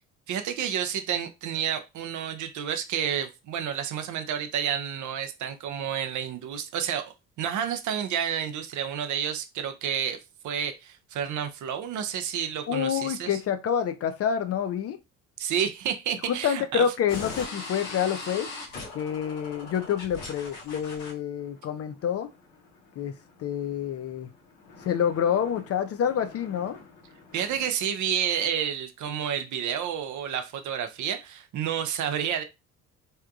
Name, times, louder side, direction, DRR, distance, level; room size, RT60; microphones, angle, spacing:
voice 1, 0.3-13.4 15.4-16.9 27.3-32.4, right 9 dB, 45° right, 0.6 m, -30 dB
voice 2, 12.7-15.0 16.2-18.5 18.9-22.3 23.0-23.1 23.4-24.3 24.8-26.8, left 8 dB, 35° left, 0.5 m, -27 dB
sound 1, 17.1-27.7, left 3 dB, 80° left, 1.2 m, -43 dB
3.4 x 2.7 x 2.4 m
hypercardioid pair, 55°, 43 cm